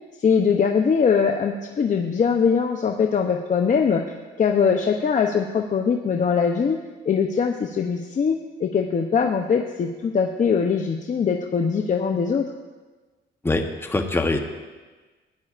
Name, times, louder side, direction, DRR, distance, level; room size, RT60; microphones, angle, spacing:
voice 1, 0.2-4.0 4.4-6.8 7.0-12.4, left 6 dB, 40° left, 3 dB, 0.7 m, -21 dB
voice 2, 13.4-14.4, left 2 dB, 10° left, 4 dB, 1.0 m, -23 dB
16.5 x 9.8 x 2.5 m, 1.3 s
cardioid pair, 90°, 20 cm